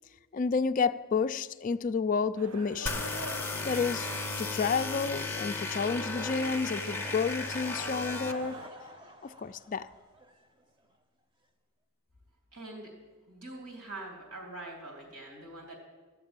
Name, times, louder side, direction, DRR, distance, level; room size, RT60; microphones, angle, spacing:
voice 1, 0.3-3.0 3.6-4.1 4.4-8.6 9.2-9.9, left 5 dB, 35° left, 0.3 m, -30 dB
sound 1, 2.4-8.7, right 3 dB, 65° right, 0.6 m, -45 dB
sound 2, 2.9-8.3, left 3 dB, 10° left, 0.7 m, -35 dB
Laughter / Crowd, 7.5-11.0, equal, 20° right, 0.8 m, -51 dB
voice 2, 12.5-12.9 13.3-15.8, right 2 dB, 85° right, 3.0 m, -44 dB
14.0 x 6.7 x 8.8 m
head